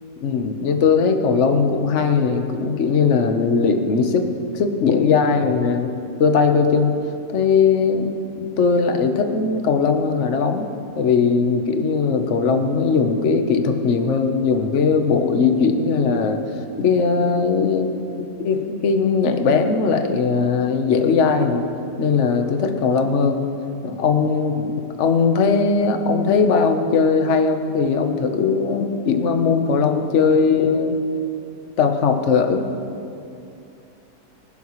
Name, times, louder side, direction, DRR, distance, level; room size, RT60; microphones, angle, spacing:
voice 1, 0.2-5.9 6.2-7.0 7.3-8.1 8.4-10.7 11.0-16.4 16.8-18.0 18.4-21.7 22.0-23.4 23.8-24.7 25.0-31.0 31.8-32.6, left 5 dB, 50° left, 5 dB, 1.2 m, -19 dB
25.5 x 11.5 x 3.1 m, 2.6 s
omnidirectional pair, 1.8 m